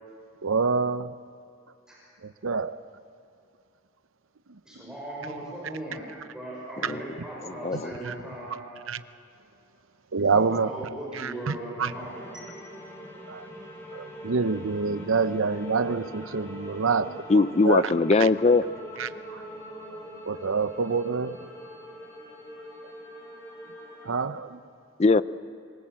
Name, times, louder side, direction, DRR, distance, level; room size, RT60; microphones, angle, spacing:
voice 1, 0.4-1.1 2.2-2.8 4.8-4.9 6.8-6.9 8.0-8.1 8.9-9.0 10.1-10.7 11.1-11.9 13.3-13.5 13.9-17.8 18.2-18.3 19.0-19.4 20.2-21.4 22.8-22.9 24.0-24.6, right 5 dB, 85° right, 13 dB, 0.7 m, -27 dB
voice 2, 4.7-8.6 10.3-12.6, right 1 dB, 5° right, -6 dB, 5.9 m, -38 dB
voice 3, 7.5-7.9 17.3-18.6 25.0-25.2, left 3 dB, 30° left, 15 dB, 0.5 m, -21 dB
sound 1, 11.8-24.1, equal, 15° left, 4.9 m, -43 dB
26.5 x 20.0 x 7.5 m, 2.6 s
head